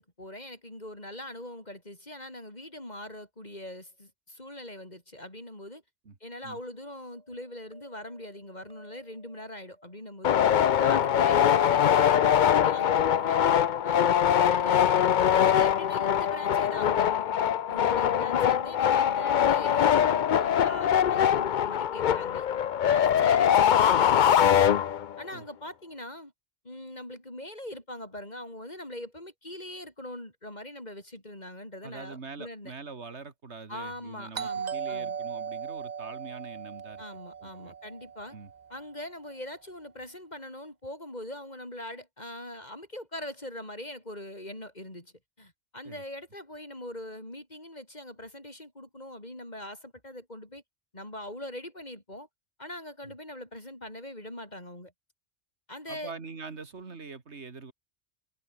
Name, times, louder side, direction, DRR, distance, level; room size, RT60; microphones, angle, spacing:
voice 1, 0.0-5.8 6.2-10.4 10.8-13.4 13.8-17.1 17.7-22.5 22.9-24.7 25.2-26.3 26.6-32.7 33.7-35.2 37.0-38.4 38.7-50.6 50.9-52.3 52.6-54.9 55.7-56.1, left 1 dB, 35° left, 5.3 m, -42 dB
sound 1, 7.1-10.4 11.3-12.6 14.0-14.9, right 1 dB, 25° right, 8.1 m, -57 dB
sound 2, 10.2-25.2, left 9 dB, 50° left, 0.6 m, -23 dB
voice 2, 17.8-18.1 23.2-23.4 25.3-25.5 31.8-37.0 37.4-37.8 38.3-38.5 45.8-46.0 53.0-53.1 55.9-57.7, right 4 dB, 65° right, 2.4 m, -44 dB
Doorbell, 34.3-38.9, right 7 dB, 45° right, 0.7 m, -37 dB
omnidirectional pair, 1.2 m